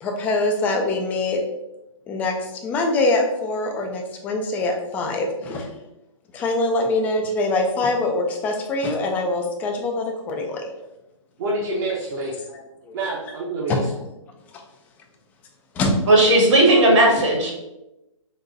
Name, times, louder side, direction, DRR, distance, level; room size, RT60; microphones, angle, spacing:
voice 1, 0.0-1.4 2.1-5.7 6.3-10.6 12.9-13.0 13.7-13.8 15.8-15.9, left 2 dB, 10° left, 2 dB, 0.3 m, -23 dB
voice 2, 11.4-12.3 12.9-13.9, right 2 dB, 35° right, -6 dB, 0.7 m, -27 dB
voice 3, 16.1-17.5, right 1 dB, 65° right, -1 dB, 1.5 m, -15 dB
4.0 x 2.2 x 3.8 m, 0.94 s
hypercardioid pair, 145°, 17 cm